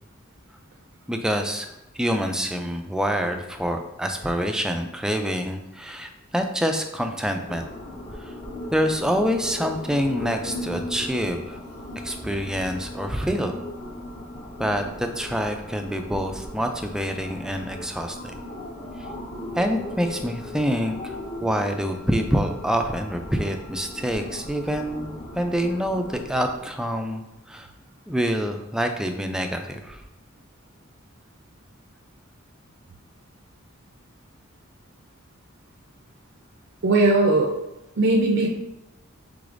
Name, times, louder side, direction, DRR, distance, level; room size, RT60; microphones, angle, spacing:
voice 1, 1.1-1.7 1.9-7.7 8.2-8.4 8.7-11.6 12.0-13.6 14.6-18.3 19.0-19.1 19.6-27.7 28.1-30.0, equal, 5° right, 5 dB, 0.3 m, -26 dB
sound 1, 7.4-26.6, left 1 dB, 45° left, 1.3 m, -37 dB
voice 2, 36.8-37.5 38.0-38.5, right 2 dB, 60° right, 0 dB, 0.5 m, -18 dB
4.9 x 3.8 x 2.5 m, 0.92 s
head